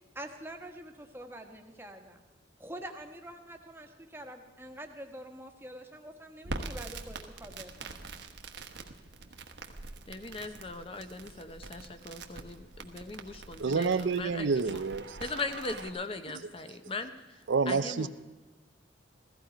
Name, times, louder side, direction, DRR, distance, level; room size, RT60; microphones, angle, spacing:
voice 1, 0.1-2.2 2.6-8.1, right 1 dB, 10° right, 4 dB, 1.2 m, -45 dB
Crackle, 6.4-15.9, right 3 dB, 65° right, 1.1 m, -44 dB
voice 2, 10.1-14.5 15.2-17.1 17.7-18.1, left 3 dB, 30° left, 9 dB, 0.8 m, -39 dB
voice 3, 13.6-15.2 17.5-18.1, right 4 dB, 85° right, 13 dB, 0.5 m, -28 dB
15.5 x 14.5 x 5.1 m, 1.2 s
head